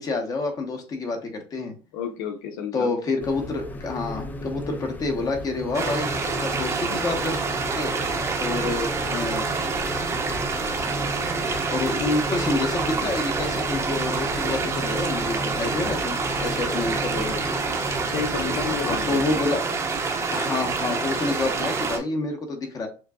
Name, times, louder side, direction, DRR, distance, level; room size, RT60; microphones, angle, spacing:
voice 1, 0.0-1.7 2.7-6.1 6.4-7.4 7.7-7.9 8.4-9.5 11.7-17.4 18.8-19.6 20.3-22.9, left 3 dB, 35° left, 4 dB, 1.1 m, -28 dB
voice 2, 1.9-3.0 18.1-19.4, left 7 dB, 85° left, 6 dB, 0.8 m, -31 dB
sound 1, 3.2-19.3, left 1 dB, 15° left, 0.4 m, -35 dB
sound 2, 5.7-22.0, right 4 dB, 25° right, 0.8 m, -27 dB
6.4 x 2.2 x 2.3 m, 0.34 s
supercardioid pair, 120°, 11 cm